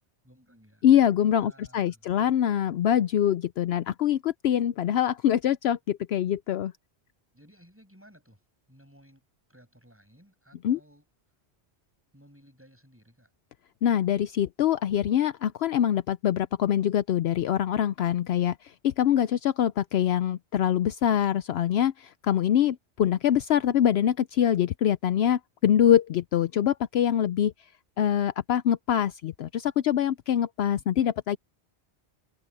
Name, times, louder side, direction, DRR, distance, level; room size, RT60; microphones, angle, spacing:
voice 1, 0.2-1.0 1.4-2.2 7.3-11.1 12.1-13.3, equal, 10° right, 7.6 m, -57 dB
voice 2, 0.8-6.7 10.6-10.8 13.8-27.5 28.0-31.4, left 10 dB, 70° left, 0.8 m, -24 dB
omnidirectional pair, 1.1 m